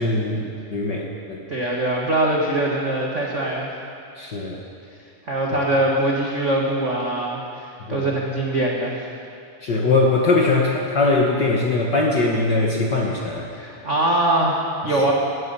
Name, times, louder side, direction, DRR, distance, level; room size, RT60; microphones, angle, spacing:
voice 1, 0.0-1.4 4.2-4.6 7.9-8.1 9.6-13.5, left 3 dB, 55° left, -1 dB, 1.3 m, -21 dB
voice 2, 1.5-3.7 5.2-9.1 13.5-15.1, right 1 dB, 55° right, -2 dB, 0.8 m, -22 dB
18.0 x 12.0 x 5.5 m, 2.5 s
omnidirectional pair, 3.3 m